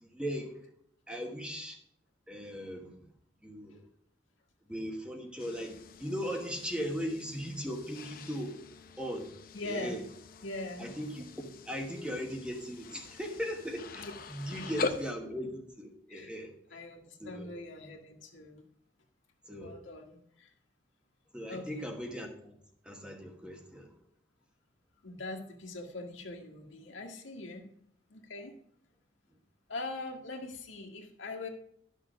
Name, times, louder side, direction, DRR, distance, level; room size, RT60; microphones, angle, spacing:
voice 1, 0.0-0.6 1.1-1.8 2.3-2.9 3.4-3.8 4.7-5.7 6.0-8.6 9.0-9.3 9.6-10.0 10.8-11.2 11.7-16.8 17.2-17.5 19.5-19.7 21.3-22.6 22.8-23.9, equal, 5° right, 2 dB, 1.3 m, -38 dB
sound 1, 5.4-15.1, left 3 dB, 45° left, 0.7 m, -43 dB
voice 2, 9.5-10.0 10.4-10.9 14.0-14.1 14.5-14.7 16.1-16.3 16.7-18.7 19.6-20.5 21.5-21.9 25.0-27.7 28.1-28.6 29.7-31.5, left 2 dB, 80° left, 0 dB, 1.9 m, -42 dB
12.0 x 6.4 x 4.9 m, 0.72 s
head